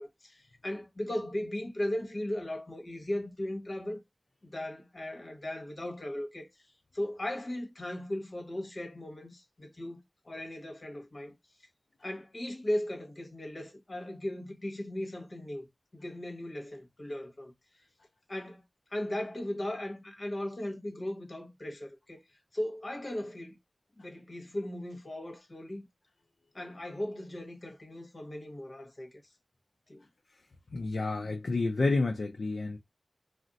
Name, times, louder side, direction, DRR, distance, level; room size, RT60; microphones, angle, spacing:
voice 1, 0.0-4.0 4.4-6.5 6.9-11.3 12.0-15.7 15.9-17.5 18.3-18.6 18.9-22.2 22.5-23.6 24.0-25.8 26.5-29.1 29.9-30.0, left 1 dB, 55° left, 1.1 m, -37 dB
voice 2, 30.7-32.8, left 3 dB, 85° left, 0.4 m, -29 dB
2.5 x 2.0 x 3.8 m
wide cardioid pair, 50°, 0 cm